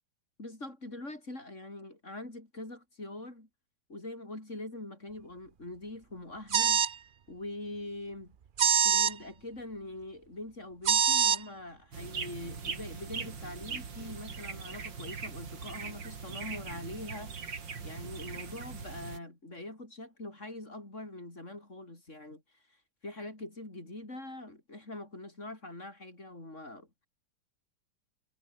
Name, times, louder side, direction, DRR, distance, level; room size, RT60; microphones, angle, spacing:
voice 1, 0.4-3.5 3.9-6.8 7.3-8.4 8.8-17.4 17.8-22.4 23.0-26.9, left 2 dB, 40° left, 6.4 m, -43 dB
sound 1, 6.5-6.9 8.6-9.1 10.8-11.4, right 8 dB, 60° right, 0.5 m, -24 dB
sound 2, 11.9-19.2, right 5 dB, 85° right, 3.3 m, -41 dB
omnidirectional pair, 1.9 m